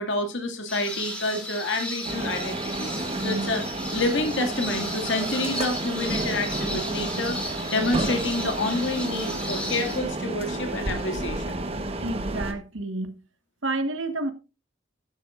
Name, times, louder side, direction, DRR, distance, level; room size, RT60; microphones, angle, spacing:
voice 1, 0.0-2.9 3.2-7.4 7.7-11.4, left 2 dB, 65° left, 2.1 m, -28 dB
sound 1, 0.7-10.0, equal, 5° left, 2.8 m, -35 dB
sound 2, 2.0-12.5, right 2 dB, 30° right, 1.2 m, -31 dB
voice 2, 12.0-13.2 13.6-14.3, right 2 dB, 75° right, 1.4 m, -29 dB
12.5 x 11.0 x 2.5 m
head